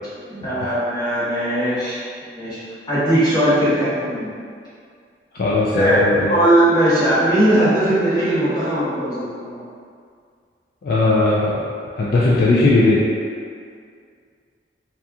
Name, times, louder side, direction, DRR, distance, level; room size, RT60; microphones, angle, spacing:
voice 1, 0.3-2.6 2.9-4.3 5.7-9.6, right 1 dB, 25° left, -12 dB, 1.0 m, -19 dB
voice 2, 5.3-6.4 10.8-11.6 12.0-13.0, left 2 dB, 55° left, -7 dB, 0.3 m, -17 dB
2.8 x 2.4 x 2.3 m, 2.2 s
head